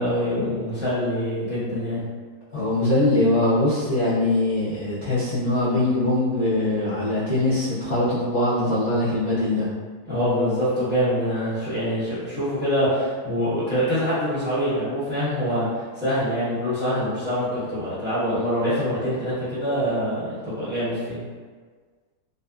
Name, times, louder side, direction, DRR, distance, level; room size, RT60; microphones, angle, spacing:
voice 1, 0.0-2.0 10.1-21.2, equal, 10° right, -13 dB, 0.7 m, -25 dB
voice 2, 2.5-9.7, left 1 dB, 50° left, -13 dB, 0.4 m, -22 dB
2.5 x 2.5 x 2.3 m, 1.5 s
omnidirectional pair, 1.7 m